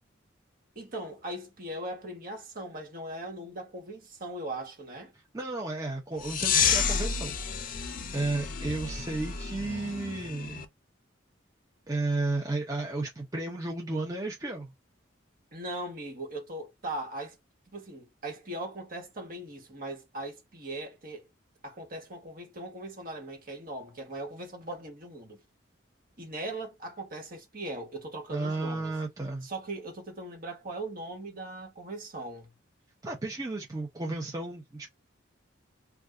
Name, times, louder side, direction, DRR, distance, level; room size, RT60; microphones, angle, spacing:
voice 1, 0.7-5.1 15.5-17.4 17.7-21.3 21.6-25.4 26.2-28.9 29.4-32.5, right 1 dB, 45° right, 1.3 m, -39 dB
voice 2, 5.3-7.7 8.1-10.7 11.9-14.7 28.3-29.5 33.0-34.9, right 2 dB, 20° right, 0.6 m, -33 dB
sound 1, 6.2-10.6, left 6 dB, 45° left, 0.5 m, -30 dB
2.6 x 2.3 x 3.4 m
head